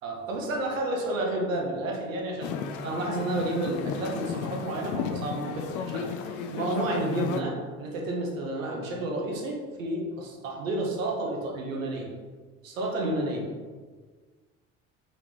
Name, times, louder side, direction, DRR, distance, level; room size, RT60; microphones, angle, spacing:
voice 1, 0.0-2.5 2.8-12.1 12.6-13.4, right 1 dB, 80° right, 0 dB, 0.8 m, -31 dB
sound 1, 2.4-7.4, left 6 dB, 50° left, 0.4 m, -34 dB
3.7 x 3.5 x 3.1 m, 1.5 s
figure-of-eight pair, 50°, 39 cm